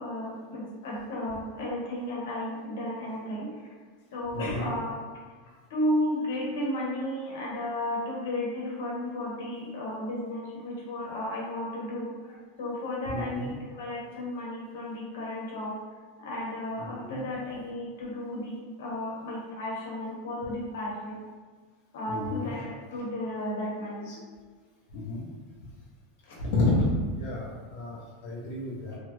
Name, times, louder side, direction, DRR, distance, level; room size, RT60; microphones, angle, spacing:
voice 1, 0.0-3.5 4.1-4.9 5.4-15.7 16.2-21.2 21.9-24.1 26.3-26.5, left 1 dB, 85° left, -4 dB, 1.0 m, -33 dB
voice 2, 4.3-4.7 13.1-13.5 16.8-17.2 22.1-22.5 24.1-24.2 24.9-25.2 25.6-25.7 26.4-29.0, left 2 dB, 55° left, -7 dB, 0.7 m, -30 dB
2.9 x 2.4 x 3.0 m, 1.5 s
supercardioid pair, 175°, 0 cm